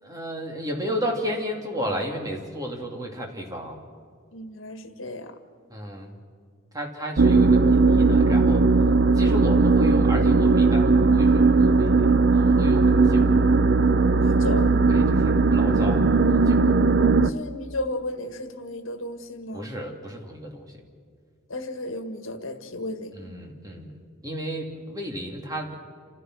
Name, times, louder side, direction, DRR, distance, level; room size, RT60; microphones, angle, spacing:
voice 1, 0.0-3.8 5.7-6.2 6.7-8.7 9.1-12.1 12.3-13.3 14.9-16.6 19.5-20.8 23.1-24.0 24.2-25.7, equal, 20° right, 1 dB, 2.7 m, -33 dB
voice 2, 4.3-5.3 14.1-14.7 17.2-19.7 21.5-23.1, left 1 dB, 75° left, 8 dB, 1.7 m, -34 dB
sound 1, 7.2-17.3, right 3 dB, 55° right, 0.6 m, -18 dB
29.0 x 15.0 x 6.3 m, 2.1 s
head